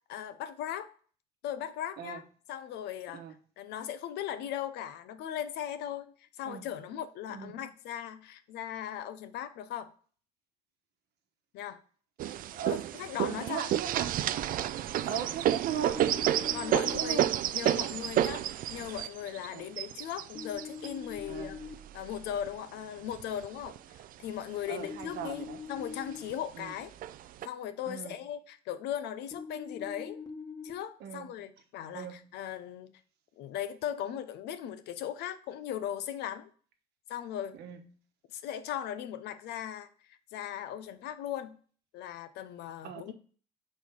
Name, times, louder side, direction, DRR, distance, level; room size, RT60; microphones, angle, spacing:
voice 1, 0.1-0.9 1.4-2.2 2.5-3.2 3.6-9.9 11.5-11.8 12.7-13.7 15.0-15.1 16.5-21.6 21.9-23.7 24.2-26.9 27.4-30.2 30.6-32.9 33.4-36.5 37.1-37.6 38.3-41.6 41.9-43.1, left 10 dB, 80° left, 0.7 m, -38 dB
sound 1, 12.2-22.5 23.1-24.1 24.5-24.6 24.8-25.5 26.3-26.4 27.0-27.5, right 12 dB, 55° right, 0.4 m, -31 dB
voice 2, 13.4-14.2 15.1-16.0 16.9-17.3 19.5-19.7 21.2-21.5 24.7-25.6 26.5-26.7 27.8-28.1 31.0-31.3 31.9-32.3 37.5-37.8 42.8-43.1, right 9 dB, 75° right, 1.1 m, -38 dB
sound 2, 15.9-17.3 20.4-21.7 24.8-26.2 29.3-30.7, left 5 dB, 25° left, 1.2 m, -43 dB
5.5 x 4.3 x 4.6 m
cardioid pair, 110°, 17 cm